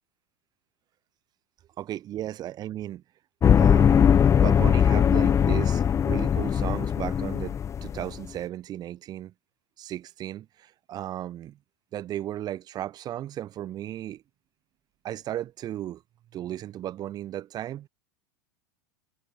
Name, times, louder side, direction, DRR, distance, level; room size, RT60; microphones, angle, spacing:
voice 1, 1.8-3.0 3.6-4.1 4.3-7.5 7.8-9.3 9.8-10.4 10.9-11.5 11.9-14.2 15.0-16.0 16.3-17.9, right 12 dB, 35° right, 7.8 m, -35 dB
sound 1, 3.4-8.2, left 8 dB, 25° left, 3.6 m, -20 dB
figure-of-eight pair, 85°, 11 cm